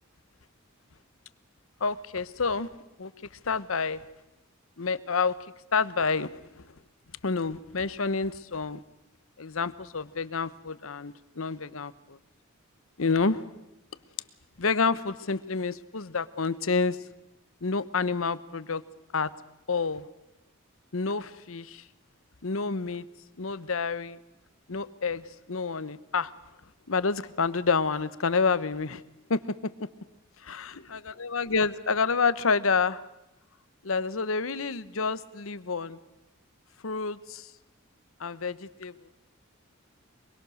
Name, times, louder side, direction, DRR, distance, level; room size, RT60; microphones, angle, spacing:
voice 1, 1.8-2.7 3.0-3.1 3.4-4.0 4.8-5.4 5.7-6.6 7.2-8.8 9.4-12.2 13.0-13.5 14.6-17.0 17.6-18.8 19.1-19.3 19.7-20.1 20.9-21.8 22.4-23.1 23.4-24.2 24.7-26.3 26.9-29.0 29.3-29.7 30.4-30.7 31.2-33.0 33.8-36.0 36.8-37.5 38.2-39.1, left 4 dB, 75° left, 15 dB, 0.9 m, -28 dB
23.5 x 22.5 x 6.5 m, 0.94 s
head